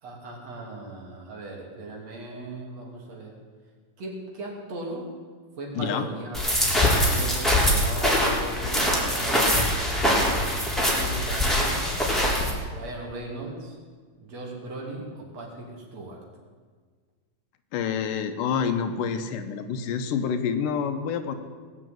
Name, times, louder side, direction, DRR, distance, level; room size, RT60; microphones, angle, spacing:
voice 1, 0.0-3.3 4.0-5.1 5.6-6.7 7.0-9.9 10.9-11.9 12.7-13.8 14.2-16.2, right 2 dB, 55° right, -1 dB, 3.9 m, -38 dB
voice 2, 5.7-6.1 17.7-21.3, left 7 dB, 90° left, 8 dB, 2.7 m, -27 dB
sound 1, 6.3-12.5, left 1 dB, ahead, 2.6 m, -23 dB
19.0 x 7.7 x 9.3 m, 1.6 s
omnidirectional pair, 3.7 m